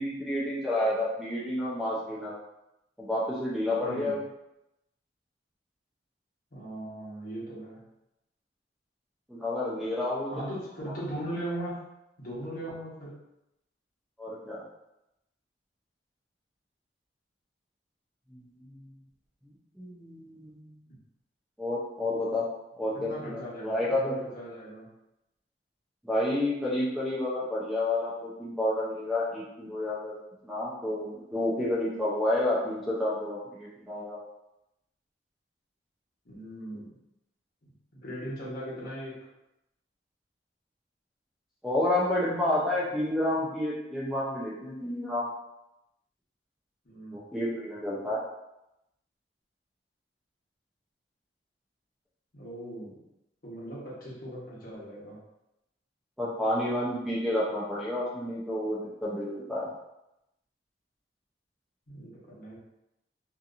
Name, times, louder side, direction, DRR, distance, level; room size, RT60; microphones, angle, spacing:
voice 1, 0.0-2.3 3.0-4.2 9.3-10.3 14.2-14.6 18.3-18.8 19.8-20.7 21.6-22.4 22.8-24.1 26.0-30.2 30.4-34.2 41.6-45.3 47.1-48.2 56.2-59.7, left 1 dB, ahead, -7 dB, 0.5 m, -30 dB
voice 2, 3.8-4.2 6.5-7.8 10.3-11.8 12.2-13.2 22.9-24.9 36.2-36.9 37.6-39.2 46.8-47.2 52.3-53.0 53.4-55.2 61.9-62.6, right 1 dB, 55° left, -6 dB, 1.0 m, -39 dB
2.8 x 2.5 x 2.4 m, 0.88 s
head